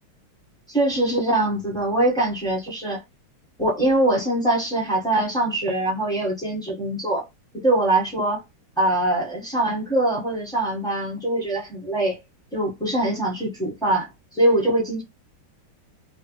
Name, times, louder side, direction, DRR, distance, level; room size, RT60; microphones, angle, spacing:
voice 1, 0.7-3.0 3.6-7.3 7.6-8.4 8.8-12.2 12.5-15.0, right 1 dB, 5° left, 0.7 m, -23 dB
3.2 x 2.3 x 3.0 m
omnidirectional pair, 2.3 m